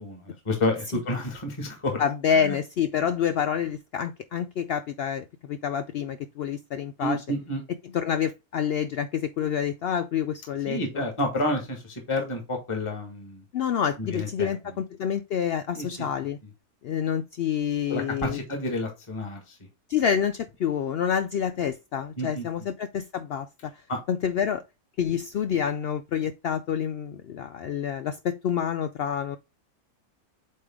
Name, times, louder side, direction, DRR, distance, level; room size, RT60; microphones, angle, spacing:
voice 1, 0.0-2.0 2.4-2.6 7.0-7.6 10.7-13.4 14.0-14.6 15.7-16.1 17.9-19.6 22.2-22.5 23.9-24.0, left 1 dB, 20° left, 1.6 m, -30 dB
voice 2, 2.0-7.2 7.9-11.0 13.5-16.4 16.8-18.4 19.9-23.7 24.1-24.6 25.0-29.4, left 8 dB, 80° left, 0.5 m, -28 dB
8.5 x 3.4 x 3.5 m
omnidirectional pair, 1.6 m